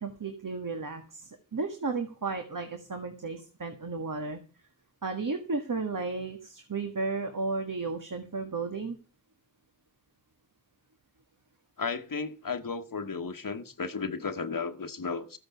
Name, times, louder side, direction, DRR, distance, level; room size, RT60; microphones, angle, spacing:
voice 1, 0.0-4.4 5.0-9.0, right 3 dB, 65° right, 1.7 m, -34 dB
voice 2, 11.8-15.4, left 5 dB, 75° left, 1.2 m, -34 dB
13.5 x 7.9 x 6.9 m
wide cardioid pair, 45°, 34 cm